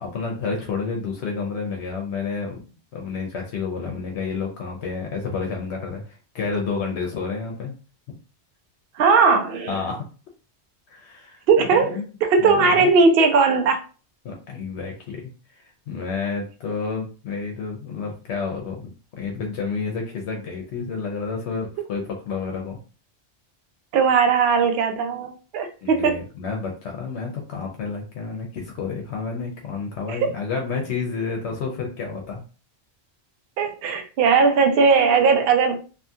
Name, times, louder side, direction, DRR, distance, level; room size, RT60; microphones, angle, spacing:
voice 1, 0.0-2.6 2.9-7.7 9.7-10.0 10.9-11.4 11.8-12.1 12.4-12.9 14.2-15.3 15.6-18.9 19.2-22.8 25.8-32.4, left 5 dB, 75° left, 0.9 m, -30 dB
voice 2, 9.0-9.8 11.5-13.8 23.9-26.2 30.1-30.2 33.6-35.9, right 5 dB, 65° right, 0.7 m, -18 dB
2.7 x 2.3 x 2.7 m
omnidirectional pair, 1.2 m